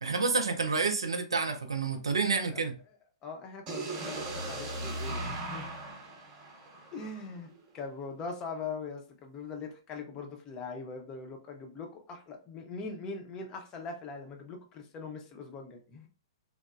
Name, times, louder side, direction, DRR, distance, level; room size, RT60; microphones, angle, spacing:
voice 1, 0.0-2.7, right 4 dB, 75° right, 0.4 m, -29 dB
voice 2, 2.3-2.7 3.2-5.7 6.9-16.1, left 4 dB, 25° left, 0.6 m, -41 dB
sound 1, 3.7-7.6, right 2 dB, 25° right, 0.7 m, -38 dB
2.9 x 2.0 x 2.3 m
figure-of-eight pair, 110°, 3 cm